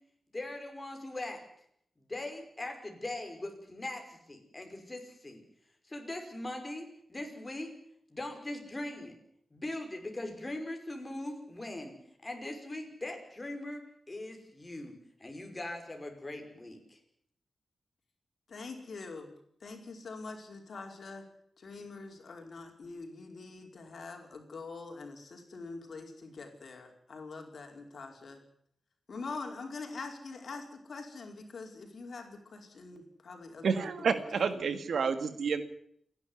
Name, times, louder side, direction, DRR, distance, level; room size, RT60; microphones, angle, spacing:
voice 1, 0.3-1.4 2.0-5.4 5.9-7.7 8.1-9.1 9.5-11.9 12.2-14.9 15.2-17.0, left 1 dB, 20° left, 4 dB, 5.5 m, -40 dB
voice 2, 18.5-19.3 19.6-21.3 21.6-28.4 29.1-33.7 34.1-34.5, left 3 dB, 60° left, 3 dB, 4.9 m, -44 dB
voice 3, 33.6-35.6, right 5 dB, 75° right, 10 dB, 2.2 m, -29 dB
28.5 x 11.5 x 9.8 m, 0.68 s
wide cardioid pair, 125°, 0 cm